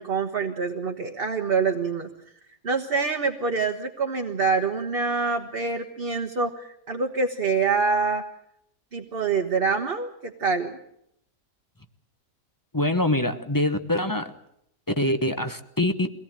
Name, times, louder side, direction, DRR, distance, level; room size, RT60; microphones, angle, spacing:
voice 1, 0.0-2.1 2.6-8.2 8.9-10.8, right 4 dB, 35° right, 3 dB, 1.3 m, -26 dB
voice 2, 12.7-14.3 15.0-16.1, left 1 dB, 15° left, 9 dB, 0.9 m, -24 dB
23.5 x 18.0 x 8.9 m, 0.75 s
omnidirectional pair, 1.8 m